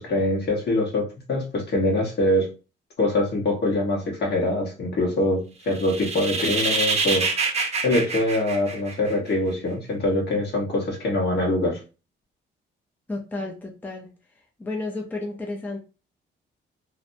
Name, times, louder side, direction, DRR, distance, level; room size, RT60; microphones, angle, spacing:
voice 1, 0.0-2.5 3.0-7.6 7.8-11.8, left 1 dB, 55° left, 1.1 m, -24 dB
sound 1, 5.7-9.3, right 4 dB, 35° right, 0.6 m, -26 dB
voice 2, 13.1-14.1 14.6-15.8, left 2 dB, 10° left, 0.5 m, -32 dB
2.6 x 2.1 x 2.6 m
cardioid pair, 90°, 20 cm